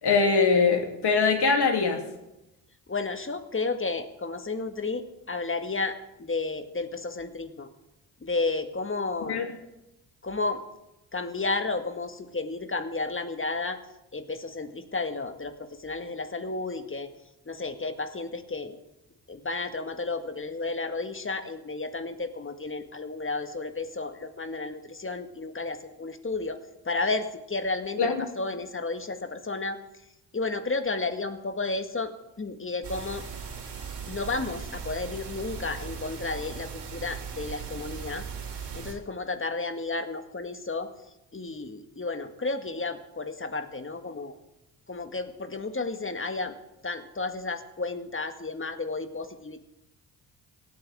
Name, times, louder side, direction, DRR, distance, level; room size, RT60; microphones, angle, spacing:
voice 1, 0.0-2.0 9.3-9.5 28.0-28.1, left 4 dB, 55° left, 3 dB, 3.1 m, -22 dB
voice 2, 2.9-7.7 8.2-9.5 10.2-10.6 11.1-13.8 14.1-17.1 17.5-18.8 19.3-26.6 26.9-29.8 30.3-33.3 34.1-38.2 38.7-40.9 41.3-44.3 44.9-46.5 46.8-49.6, left 3 dB, 25° left, 8 dB, 1.8 m, -32 dB
sound 1, 32.8-38.9, right 6 dB, 55° right, 3.5 m, -38 dB
26.5 x 9.2 x 3.7 m, 0.92 s
hypercardioid pair, 40°, 48 cm